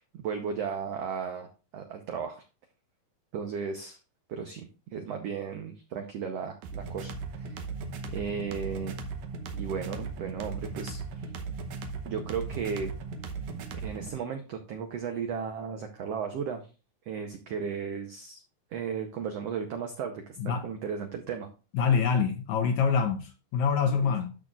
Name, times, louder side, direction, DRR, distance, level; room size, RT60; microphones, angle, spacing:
voice 1, 0.0-2.4 3.3-4.0 4.3-7.6 8.1-8.9 9.5-11.3 12.0-12.9 13.8-16.6 17.1-18.4 18.7-21.5 24.0-24.1, right 6 dB, 85° right, 1.4 m, -35 dB
sound 1, 6.6-14.2, right 4 dB, 70° right, 2.0 m, -37 dB
voice 2, 21.7-24.4, left 6 dB, 70° left, 1.9 m, -26 dB
13.0 x 6.1 x 2.4 m
omnidirectional pair, 4.0 m